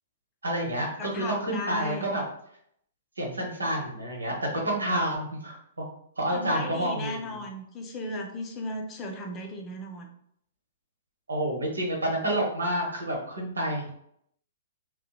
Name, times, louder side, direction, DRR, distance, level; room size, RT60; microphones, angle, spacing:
voice 1, 0.4-2.2 3.2-4.4 4.6-5.9 6.2-7.1 11.3-13.9, right 1 dB, 85° right, -1 dB, 0.8 m, -29 dB
voice 2, 1.0-2.1 6.3-10.1, left 1 dB, 25° left, 2 dB, 0.4 m, -36 dB
2.7 x 2.1 x 2.2 m, 0.70 s
figure-of-eight pair, 120°, 0 cm